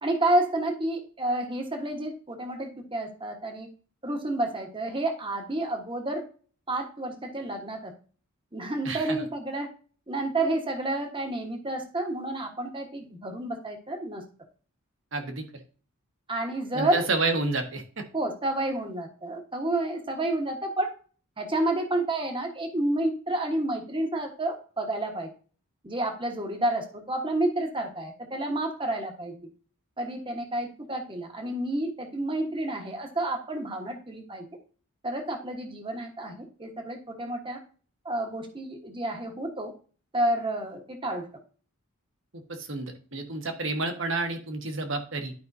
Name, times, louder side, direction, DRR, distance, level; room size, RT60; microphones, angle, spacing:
voice 1, 0.0-3.7 4.0-6.2 6.7-7.9 8.5-9.7 10.1-14.2 16.3-17.1 18.1-20.9 21.4-25.3 25.8-29.3 30.0-34.4 35.0-37.6 38.0-39.7 40.1-41.2, right 1 dB, 25° right, 4 dB, 1.3 m, -30 dB
voice 2, 8.8-9.2 15.1-15.4 16.7-18.0 42.5-45.3, right 3 dB, 60° right, 4 dB, 1.5 m, -30 dB
11.5 x 5.3 x 2.7 m, 0.40 s
head